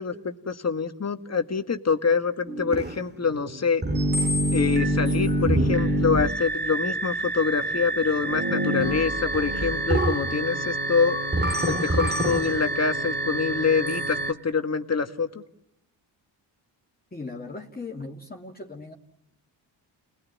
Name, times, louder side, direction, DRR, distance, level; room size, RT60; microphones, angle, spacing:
voice 1, 0.0-3.8 4.5-11.2 11.7-15.4, left 5 dB, 35° left, 2.0 m, -25 dB
sound 1, 2.5-14.3, right 1 dB, 25° right, 2.3 m, -26 dB
voice 2, 17.1-18.9, left 3 dB, 20° left, 3.0 m, -38 dB
30.0 x 20.5 x 9.7 m
cardioid pair, 80°, 43 cm